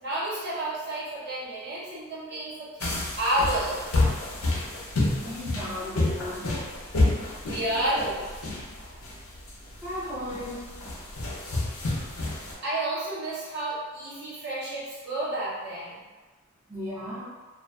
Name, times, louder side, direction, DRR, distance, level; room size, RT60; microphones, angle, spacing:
voice 1, 0.0-3.8 7.5-8.3 12.6-16.0, right 1 dB, 50° right, -9 dB, 0.9 m, -30 dB
sound 1, 2.8-12.5, left 2 dB, 75° left, 0.6 m, -29 dB
voice 2, 5.2-6.5 9.8-10.8 16.7-17.2, left 1 dB, 10° right, -13 dB, 0.5 m, -35 dB
2.4 x 2.4 x 2.3 m, 1.3 s
head